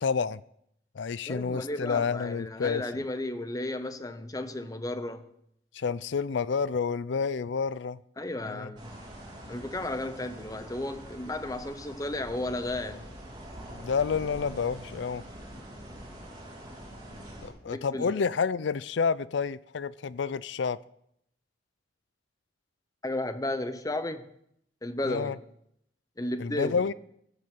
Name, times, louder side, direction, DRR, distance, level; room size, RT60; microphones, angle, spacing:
voice 1, 0.0-0.4 0.9-3.0 5.7-8.0 8.5-8.7 13.7-15.2 17.4-20.8 25.0-25.4 26.4-26.9, left 5 dB, 70° left, 0.4 m, -29 dB
voice 2, 1.3-5.3 8.2-9.0 9.5-13.1 17.7-18.3 23.0-24.3 24.8-25.4 26.2-26.8, left 1 dB, 20° left, 0.7 m, -34 dB
sound 1, 8.8-17.5, right 1 dB, 25° right, 2.8 m, -44 dB
14.5 x 8.2 x 5.4 m
head